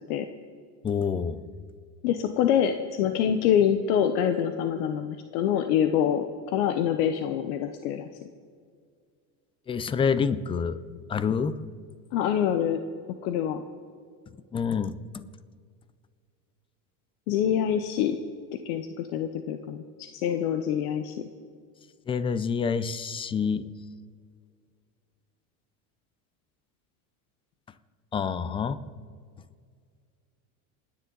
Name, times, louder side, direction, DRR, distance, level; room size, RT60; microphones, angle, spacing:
voice 1, 0.8-1.4 9.7-10.8 11.1-11.5 14.5-14.9 22.1-23.7 28.1-28.8, left 6 dB, 15° left, 14 dB, 0.3 m, -27 dB
voice 2, 2.0-8.1 12.1-12.8 13.2-13.6 17.3-18.2 18.5-21.3 28.5-28.6, left 9 dB, 80° left, 8 dB, 1.0 m, -26 dB
27.5 x 10.0 x 3.9 m, 2.1 s
supercardioid pair, 135°, 44 cm